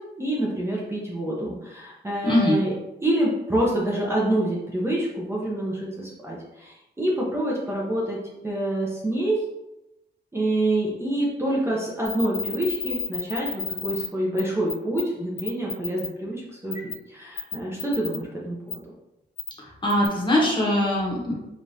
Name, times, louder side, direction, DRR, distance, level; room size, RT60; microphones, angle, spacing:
voice 1, 0.2-2.7 3.0-9.4 10.3-18.8, right 1 dB, 15° right, -5 dB, 0.6 m, -27 dB
voice 2, 2.2-2.6 19.6-21.3, left 1 dB, 25° left, -3 dB, 1.0 m, -22 dB
sound 1, 12.1-14.1 14.4-14.5 14.7-15.0 15.4-16.1 16.7-16.9 17.4-18.2 18.7-18.8 19.4-19.5 19.9-20.1, left 6 dB, 60° left, 0.5 m, -31 dB
5.0 x 2.5 x 2.7 m, 0.93 s
wide cardioid pair, 175°, 18 cm